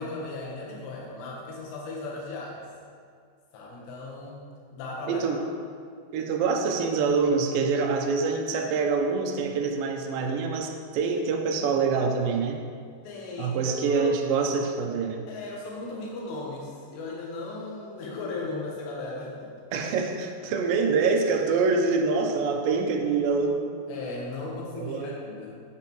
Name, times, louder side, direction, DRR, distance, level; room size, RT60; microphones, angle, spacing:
voice 1, 0.0-2.7 3.5-4.4 4.7-5.4 13.0-14.1 15.3-19.7 23.9-25.6, left 2 dB, 85° left, -3 dB, 3.4 m, -36 dB
voice 2, 5.1-5.4 6.1-12.6 13.4-15.2 18.4-18.5 19.7-23.6 24.7-25.1, right 4 dB, 80° right, 2 dB, 2.1 m, -25 dB
8.6 x 8.1 x 3.0 m, 2.1 s
omnidirectional pair, 4.8 m